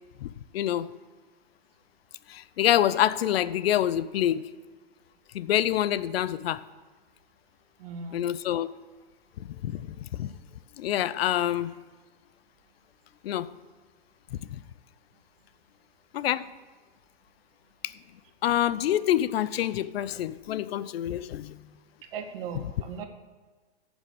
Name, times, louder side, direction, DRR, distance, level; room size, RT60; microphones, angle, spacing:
voice 1, 0.2-0.9 2.3-4.5 5.3-6.6 8.1-8.7 9.4-10.3 10.8-11.7 13.2-13.5 14.3-14.6 16.1-16.5 17.8-17.9 18.4-21.7, left 12 dB, 70° left, 0.6 m, -27 dB
voice 2, 7.8-8.2 22.1-23.1, right 5 dB, 60° right, 1.7 m, -38 dB
8.8 x 7.2 x 8.2 m
hypercardioid pair, 120°, 31 cm